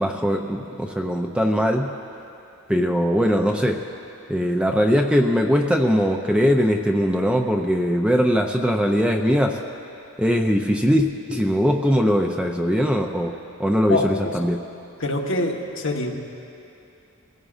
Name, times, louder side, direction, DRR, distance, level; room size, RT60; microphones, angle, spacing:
voice 1, 0.0-1.9 2.7-3.8 4.3-9.6 10.2-14.6, equal, 5° right, 2 dB, 0.5 m, -21 dB
voice 2, 13.9-14.4 15.0-16.2, left 2 dB, 60° left, 1 dB, 1.2 m, -25 dB
23.0 x 16.0 x 2.5 m, 2.7 s
head